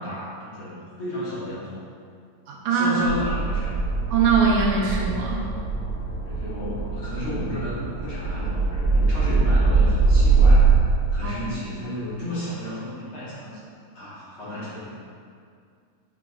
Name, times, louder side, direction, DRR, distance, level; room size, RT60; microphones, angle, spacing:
voice 1, 0.0-1.8 2.7-3.8 6.2-10.7 11.1-13.6 13.9-14.9, left 1 dB, 50° left, -11 dB, 1.7 m, -33 dB
voice 2, 2.5-3.0 4.1-5.4 11.2-11.4, right 5 dB, 75° right, -2 dB, 1.8 m, -22 dB
sound 1, 3.0-10.8, right 4 dB, 70° left, 1.8 m, -22 dB
6.8 x 6.0 x 2.4 m, 2.3 s
omnidirectional pair, 4.0 m